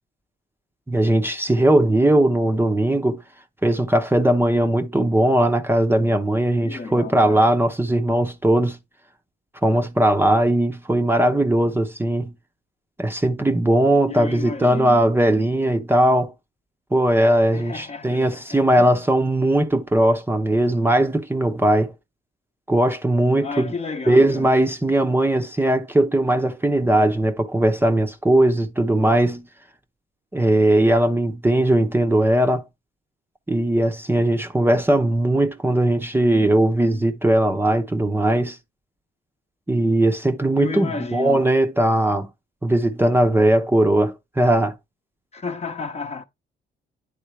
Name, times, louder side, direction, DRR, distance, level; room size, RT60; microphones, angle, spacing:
voice 1, 0.9-3.2 3.6-8.8 9.6-12.3 13.0-16.3 16.9-21.9 22.7-23.7 24.1-29.5 30.3-32.6 33.5-38.6 39.7-42.3 42.6-44.7, right 1 dB, 10° right, 0.7 m, -19 dB
voice 2, 6.6-7.5 14.1-15.0 17.5-18.9 23.4-24.5 40.6-41.4 45.3-46.2, left 4 dB, 35° left, 0.9 m, -32 dB
10.0 x 3.8 x 3.2 m
cardioid pair, 90°, 20 cm